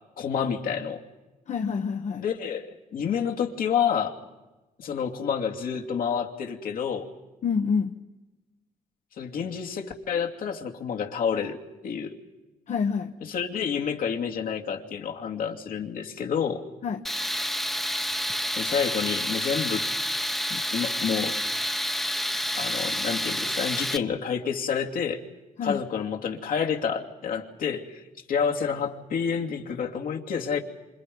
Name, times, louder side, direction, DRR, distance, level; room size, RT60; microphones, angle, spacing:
voice 1, 0.2-1.0 2.2-4.2 4.8-7.1 9.2-12.2 13.2-16.7 18.6-19.9 20.5-21.4 22.6-25.2 25.6-28.0 28.3-30.6, left 7 dB, 75° left, 2 dB, 2.7 m, -29 dB
voice 2, 1.5-2.2 7.4-7.9 12.7-13.1 16.8-17.0 25.6-25.8, left 5 dB, 55° left, 5 dB, 1.1 m, -27 dB
Tools, 17.0-24.0, equal, ahead, 1.0 m, -29 dB
27.5 x 26.0 x 5.5 m, 1.1 s
cardioid pair, 95°, 15 cm